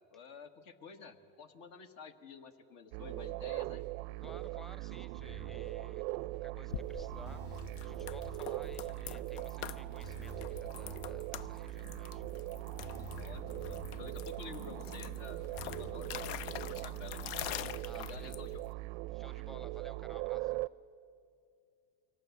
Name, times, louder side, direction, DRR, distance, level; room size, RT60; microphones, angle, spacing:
voice 1, 0.1-3.8 13.1-17.3 17.9-18.6, left 6 dB, 65° left, 9 dB, 1.5 m, -51 dB
sound 1, 2.9-20.7, right 21 dB, 75° right, 0.5 m, -41 dB
voice 2, 4.2-6.0 6.4-12.2 17.8-18.4 19.1-20.6, left 1 dB, ahead, 12 dB, 0.7 m, -55 dB
sound 2, 5.1-6.4 6.7-6.8 7.3-9.2 9.5-9.6 10.0-12.0 12.2-12.3 12.8-14.7 15.0-15.1 15.6-15.9, left 2 dB, 35° left, 2.3 m, -53 dB
sound 3, 6.7-18.7, left 11 dB, 85° left, 0.6 m, -45 dB
24.0 x 18.0 x 8.3 m, 2.5 s
supercardioid pair, 115°, 30 cm